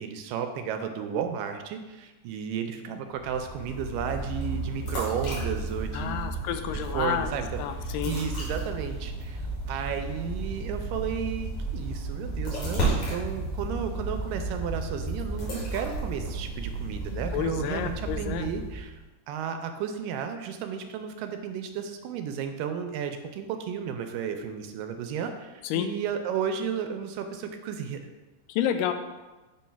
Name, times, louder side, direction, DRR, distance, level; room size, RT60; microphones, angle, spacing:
voice 1, 0.0-6.2 6.7-9.4 9.7-19.0 19.3-28.0, right 7 dB, 80° right, 6 dB, 2.1 m, -33 dB
sound 1, 3.2-19.0, right 2 dB, 60° left, 2.9 m, -33 dB
voice 2, 5.9-7.3 7.6-8.2 17.3-18.5 25.6-25.9 28.5-28.9, left 10 dB, 80° left, 8 dB, 2.1 m, -29 dB
7.1 x 3.1 x 5.6 m, 1.2 s
omnidirectional pair, 4.0 m